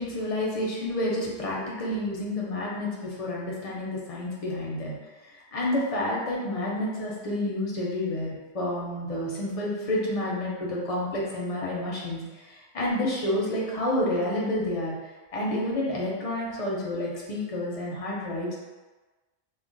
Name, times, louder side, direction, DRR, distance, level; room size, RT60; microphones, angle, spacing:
voice 1, 0.0-5.0 5.5-12.2 12.5-14.9 15.3-18.6, left 1 dB, 40° left, -4 dB, 0.6 m, -29 dB
2.3 x 2.2 x 3.8 m, 1.2 s
omnidirectional pair, 1.2 m